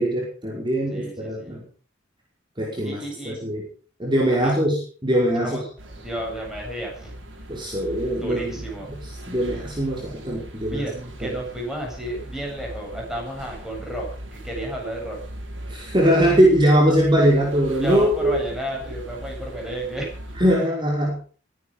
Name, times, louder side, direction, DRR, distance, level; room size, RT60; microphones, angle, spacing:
voice 1, 0.0-1.7 2.6-3.6 4.0-5.6 7.5-8.6 9.0-10.9 11.2-11.3 15.7-18.4 20.4-21.2, equal, 25° right, -3 dB, 5.4 m, -21 dB
voice 2, 0.9-1.6 2.8-3.4 4.3-4.6 5.4-5.7 5.9-7.1 8.1-8.9 10.7-10.9 11.2-14.1 14.3-15.2 17.8-20.1, right 1 dB, 5° right, -1 dB, 8.0 m, -32 dB
sound 1, 5.8-20.5, right 1 dB, 90° right, 5.2 m, -39 dB
22.5 x 10.5 x 5.2 m, 0.41 s
head